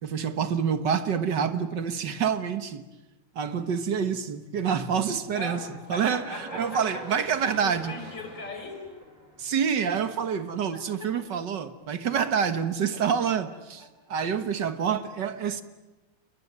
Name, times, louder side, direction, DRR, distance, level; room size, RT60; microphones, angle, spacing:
voice 1, 0.0-2.8 3.4-5.6 5.9-7.9 9.4-15.6, right 7 dB, 60° right, 1.9 m, -27 dB
voice 2, 5.3-7.1 7.4-8.9 10.7-11.1 12.9-13.3 13.8-13.9, left 1 dB, 55° left, 5.2 m, -40 dB
sound 1, 5.8-10.0, equal, 20° right, 5.9 m, -45 dB
29.0 x 22.0 x 9.3 m
omnidirectional pair, 2.3 m